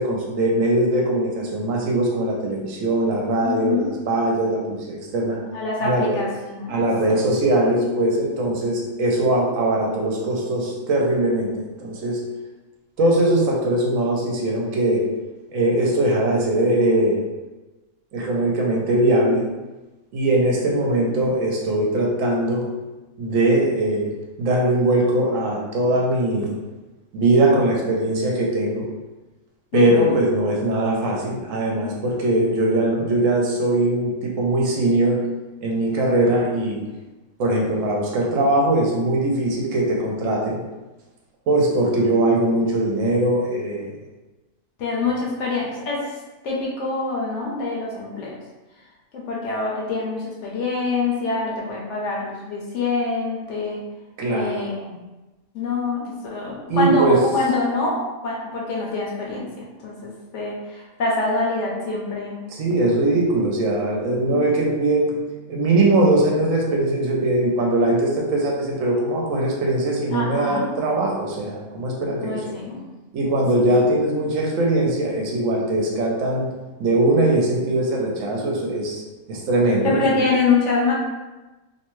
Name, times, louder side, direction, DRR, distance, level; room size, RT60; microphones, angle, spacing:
voice 1, 0.0-5.4 5.8-6.2 6.7-12.2 13.0-15.0 15.5-17.2 18.1-19.4 20.1-22.7 23.2-24.1 24.4-26.5 27.1-28.9 29.7-35.2 35.6-36.8 37.4-40.6 41.5-43.9 54.2-54.6 56.7-57.2 62.5-65.2 65.5-72.6 73.1-76.5 76.8-79.0 79.3-80.3, right 1 dB, 70° right, -1 dB, 0.9 m, -21 dB
voice 2, 3.4-3.9 5.5-6.7 29.7-30.1 31.7-31.9 44.8-46.0 46.4-48.4 49.1-53.8 54.3-55.0 55.5-58.0 58.2-62.4 64.2-64.5 70.1-70.7 72.2-72.8 73.5-73.7 79.8-80.9, left 3 dB, 65° left, -3 dB, 0.8 m, -25 dB
2.7 x 2.2 x 3.0 m, 1.1 s
omnidirectional pair, 1.5 m